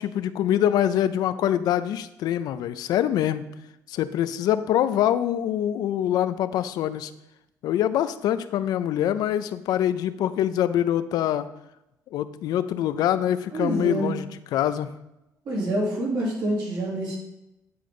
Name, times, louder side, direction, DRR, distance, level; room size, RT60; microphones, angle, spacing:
voice 1, 0.0-3.5 3.9-7.1 7.6-11.5 12.1-14.9, left 11 dB, 80° left, 13 dB, 0.4 m, -24 dB
voice 2, 13.5-14.1 15.5-17.2, right 1 dB, 75° right, -4 dB, 3.2 m, -26 dB
9.5 x 3.8 x 5.2 m, 0.90 s
cardioid pair, 95°, 7 cm